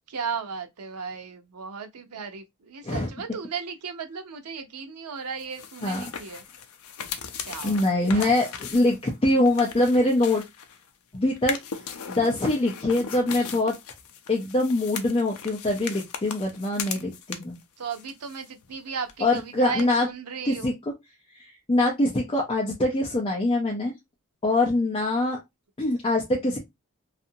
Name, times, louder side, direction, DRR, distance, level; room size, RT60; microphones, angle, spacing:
voice 1, 0.1-6.4 7.5-7.9 8.1-8.5 17.8-20.7, right 6 dB, 90° right, 0.6 m, -35 dB
sound 1, 5.4-10.9 11.4-17.6 17.9-18.8 19.0-19.1 19.8-19.9, left 7 dB, 70° left, 0.5 m, -38 dB
voice 2, 7.6-10.4 11.1-11.6 12.1-13.8 14.3-17.6 19.2-20.1 20.4-20.7 21.7-23.9 24.4-25.4 25.8-26.6, left 2 dB, 25° left, 0.6 m, -23 dB
2.7 x 2.4 x 2.7 m
head